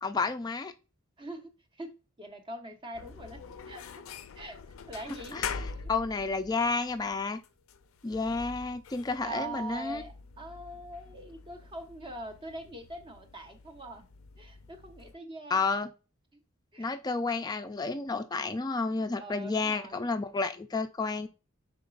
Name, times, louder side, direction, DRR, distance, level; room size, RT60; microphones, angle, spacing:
voice 1, 0.0-0.7 5.3-5.6 5.9-7.4 8.0-10.0 15.5-15.9 16.8-21.3, left 4 dB, 20° left, 0.3 m, -31 dB
voice 2, 1.2-1.5 1.8-4.0 4.3-4.6 4.9-5.9 9.2-14.1 14.4-15.6 16.7-16.9 19.2-20.0, right 1 dB, 25° right, 0.7 m, -42 dB
sound 1, 2.9-15.2, left 6 dB, 80° left, 0.4 m, -45 dB
5.2 x 3.8 x 2.4 m
head